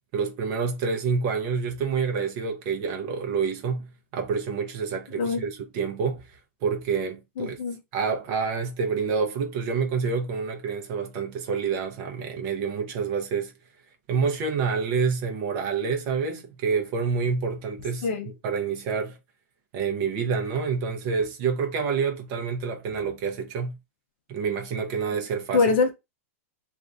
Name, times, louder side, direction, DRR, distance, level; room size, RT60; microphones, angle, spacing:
voice 1, 0.1-6.2 6.6-7.6 7.9-13.5 14.1-18.1 18.4-19.2 19.7-23.8 24.3-25.6, right 5 dB, 30° right, 0.6 m, -28 dB
voice 2, 7.4-7.8 18.0-18.3 25.5-25.9, left 4 dB, 45° left, 0.5 m, -23 dB
2.6 x 2.4 x 3.2 m
supercardioid pair, 180°, 8 cm